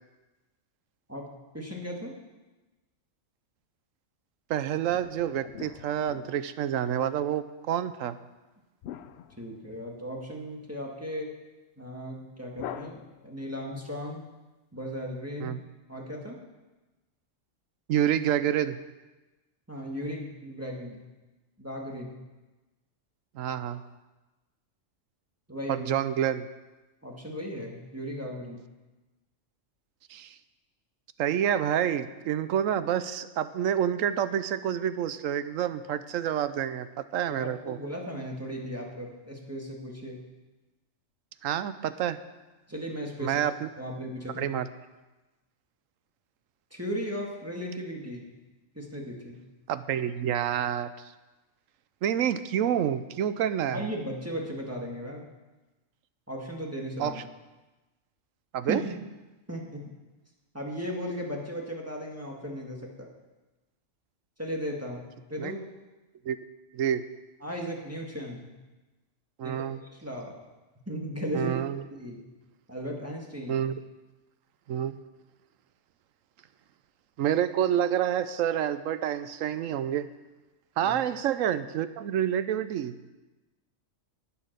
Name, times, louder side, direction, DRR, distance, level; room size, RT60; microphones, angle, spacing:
voice 1, 1.1-2.2 9.4-11.3 11.8-14.3 14.7-15.6 15.9-16.4 19.7-21.0 21.6-22.2 25.5-25.9 27.0-28.6 37.3-40.2 42.7-43.4 43.8-44.5 46.7-48.3 48.8-49.4 53.7-55.3 56.3-57.2 58.7-58.9 59.5-59.9 60.5-63.1 64.4-65.6 67.4-68.5 69.4-69.6 69.9-70.4 70.9-71.6 71.9-72.2 72.7-73.6 80.8-80.9, equal, 10° right, -1 dB, 1.7 m, -36 dB
voice 2, 4.5-8.2 15.4-15.6 17.9-18.8 23.3-23.8 25.7-26.5 30.1-30.4 31.2-36.9 37.1-37.8 41.4-42.2 43.2-43.7 44.4-44.7 49.7-50.9 52.0-53.8 57.0-57.2 58.5-58.8 65.4-65.5 66.2-66.4 66.7-67.0 69.4-69.8 71.3-71.8 73.5-73.8 74.7-75.0 77.2-80.1 80.8-83.1, right 10 dB, 90° right, 13 dB, 1.0 m, -28 dB
sound 1, 4.9-6.9 8.8-10.2 12.5-13.6, left 10 dB, 65° left, 0.8 m, -44 dB
11.0 x 8.9 x 6.7 m, 1.1 s
omnidirectional pair, 1.3 m